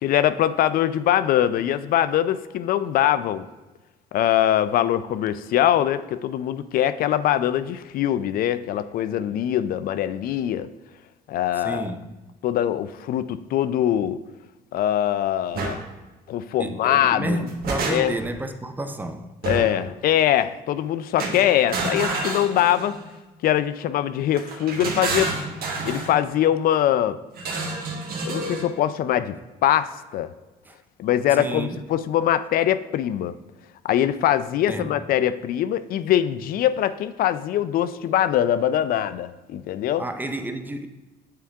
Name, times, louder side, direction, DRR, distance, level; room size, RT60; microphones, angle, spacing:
voice 1, 0.0-3.5 4.1-10.7 11.3-11.8 12.4-14.2 14.7-15.8 16.3-17.4 17.9-18.1 19.4-23.0 23.4-25.3 25.8-27.2 28.3-29.3 29.6-30.3 31.0-33.3 33.8-40.0, left 11 dB, 60° left, 0.4 m, -22 dB
voice 2, 11.5-12.2 16.6-19.4 30.6-30.8 31.3-31.9 34.7-35.0 40.0-40.9, right 2 dB, 10° right, 0.5 m, -31 dB
sound 1, 15.5-15.8 17.2-18.3 19.4-19.9 21.2-23.0 24.3-26.1 27.4-28.7, right 3 dB, 65° right, 1.4 m, -29 dB
8.7 x 3.6 x 3.5 m
cardioid pair, 110°, 17 cm